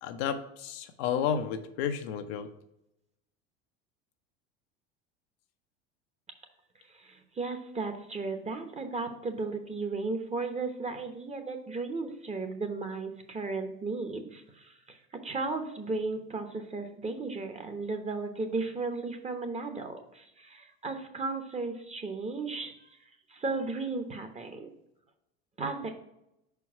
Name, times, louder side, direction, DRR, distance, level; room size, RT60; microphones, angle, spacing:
voice 1, 0.0-2.5, left 8 dB, 70° left, 7 dB, 0.8 m, -32 dB
voice 2, 6.9-15.0 15.2-23.0 23.3-24.7 25.6-25.9, right 3 dB, 20° right, 6 dB, 1.0 m, -35 dB
5.3 x 4.7 x 4.6 m, 0.83 s
hypercardioid pair, 95°, 32 cm